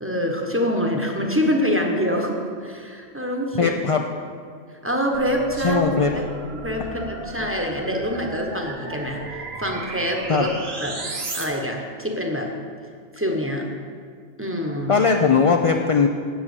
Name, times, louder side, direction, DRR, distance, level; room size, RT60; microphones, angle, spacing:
voice 1, 0.0-3.7 4.8-6.2 6.6-10.5 10.8-11.0 11.3-12.5 13.1-13.7 14.4-14.9, equal, 10° right, 1 dB, 1.0 m, -25 dB
voice 2, 3.6-4.0 5.6-6.1 10.3-10.5 14.9-16.1, left 5 dB, 45° left, 3 dB, 0.4 m, -19 dB
sound 1, 5.1-11.4, right 2 dB, 60° right, 1.4 m, -34 dB
7.4 x 7.2 x 8.3 m, 2.1 s
omnidirectional pair, 1.2 m